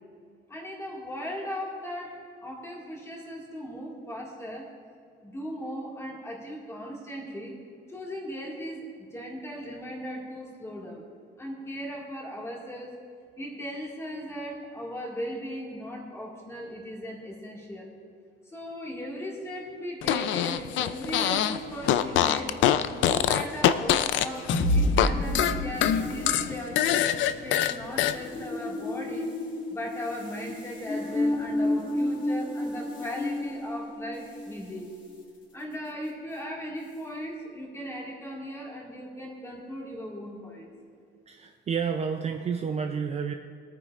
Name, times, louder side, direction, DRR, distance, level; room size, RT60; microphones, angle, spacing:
voice 1, 0.5-4.7 5.2-7.6 7.9-11.0 11.4-13.0 13.4-17.9 18.5-22.6 22.9-29.2 29.7-34.9 35.5-40.7, equal, 15° left, -2 dB, 2.0 m, -38 dB
Fart, 20.0-21.6 21.8-25.1 25.3-28.1, left 11 dB, 70° left, 0.5 m, -24 dB
sound 1, 24.1-34.6, left 1 dB, 40° left, 2.2 m, -30 dB
voice 2, 41.3-43.3, right 6 dB, 30° right, 4 dB, 0.5 m, -30 dB
22.0 x 9.4 x 2.5 m, 2.3 s
cardioid pair, 155°, 21 cm